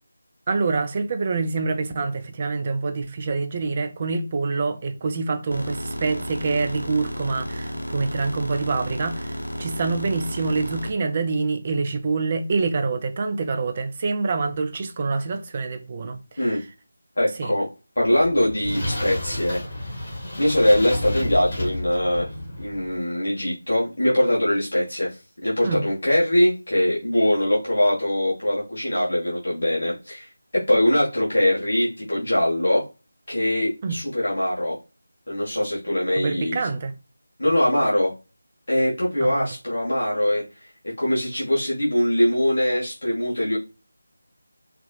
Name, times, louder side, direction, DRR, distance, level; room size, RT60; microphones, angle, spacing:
voice 1, 0.5-9.3 9.6-16.6 17.4-17.5 25.6-25.8 33.8-34.0 36.2-36.9 39.2-39.5, right 4 dB, 25° right, 0.6 m, -26 dB
sound 1, 5.5-10.9, equal, 90° left, 0.8 m, -32 dB
voice 2, 17.2-17.7 17.9-22.3 22.6-32.8 33.3-34.8 35.3-36.7 37.4-38.1 38.7-40.4 40.8-43.6, left 1 dB, 60° left, 1.5 m, -22 dB
sound 2, 18.0-23.0, left 1 dB, 40° left, 1.6 m, -31 dB
4.7 x 2.4 x 2.4 m
figure-of-eight pair, 165°, 0 cm